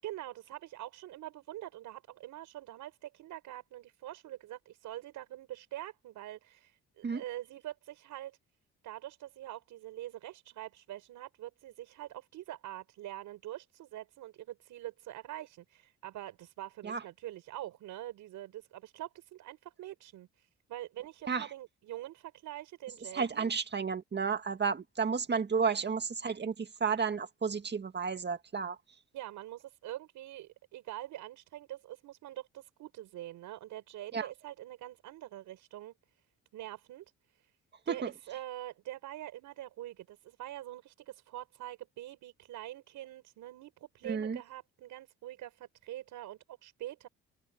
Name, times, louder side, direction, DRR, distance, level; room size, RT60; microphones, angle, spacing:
voice 1, 0.0-8.4 8.8-23.5 29.1-35.9 36.5-37.0 37.3-37.5 37.9-47.1, right 14 dB, 85° right, 5.6 m, -45 dB
voice 2, 23.1-28.8 34.1-34.3 37.9-38.1 44.1-44.4, right 5 dB, 35° right, 2.0 m, -32 dB
cardioid pair, 90°, 30 cm